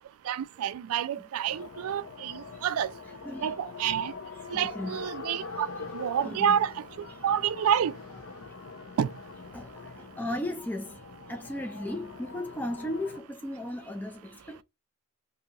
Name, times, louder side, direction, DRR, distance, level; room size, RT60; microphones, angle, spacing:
voice 1, 0.3-2.9 3.4-4.1 4.5-5.7 5.9-6.7 7.2-7.9 9.0-9.1, right 9 dB, 75° right, 0.3 m, -28 dB
sound 1, 1.5-13.2, left 4 dB, 70° left, 0.7 m, -44 dB
voice 2, 3.2-3.6 4.5-5.7 6.2-6.6 7.1-7.2 9.5-14.6, left 1 dB, 10° left, 0.4 m, -36 dB
3.9 x 2.7 x 2.7 m
head